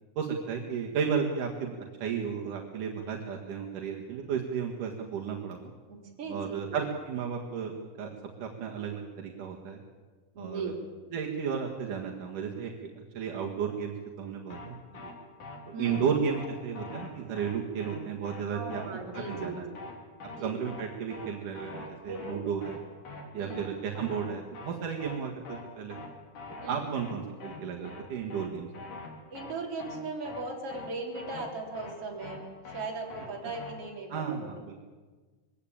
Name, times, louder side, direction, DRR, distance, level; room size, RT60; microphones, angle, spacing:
voice 1, 0.2-5.7 6.3-9.8 10.4-10.7 11.1-15.1 15.7-19.7 20.4-22.8 23.3-26.0 26.7-28.7 34.1-34.9, right 7 dB, 75° right, 0 dB, 3.3 m, -33 dB
voice 2, 5.9-6.8 10.3-10.8 15.7-16.0 18.5-19.8 20.3-20.5 22.1-22.5 23.4-23.7 26.6-26.8 29.3-32.4 32.7-34.5, right 3 dB, 45° right, 0 dB, 4.4 m, -38 dB
sound 1, 14.5-14.7 14.9-15.1 15.4-15.6 15.9-16.0 16.3-16.5 16.8-17.1 17.4-17.5 17.8-18.0 18.3-18.4 18.7-18.9 19.1-19.5 19.8-19.9 20.2-20.4 20.7-20.8 21.1-21.3 21.6-21.9 22.2-22.3 22.6-22.8 23.1-23.2 23.5-23.7 24.0-24.3 24.5-24.7 25.0-25.2 25.5-25.6 25.9-26.1 26.4-26.7 27.0-27.1 27.4-27.6 27.9-28.0 28.3-28.5 28.7-29.1 29.4-29.5 29.8-30.0 30.3-30.4 30.7-30.9 31.2-31.5 31.8-31.9 32.2-32.4 32.7-32.8 33.1-33.3 33.6-33.7, left 3 dB, 70° left, 4.6 m, -43 dB
22.0 x 16.5 x 8.8 m, 1.4 s
omnidirectional pair, 3.7 m